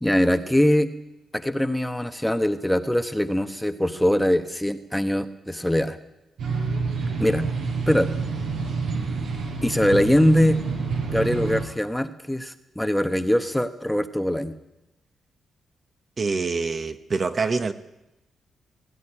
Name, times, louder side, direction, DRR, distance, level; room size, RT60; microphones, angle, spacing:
voice 1, 0.0-0.9 1.3-6.0 7.2-7.5 7.9-8.1 9.6-10.6 11.1-14.5, left 1 dB, 5° left, 1.0 m, -22 dB
sound 1, 6.4-11.6, right 4 dB, 80° right, 5.0 m, -28 dB
voice 2, 16.2-17.7, right 4 dB, 35° right, 1.1 m, -25 dB
18.0 x 17.5 x 10.0 m
wide cardioid pair, 160°, 0 cm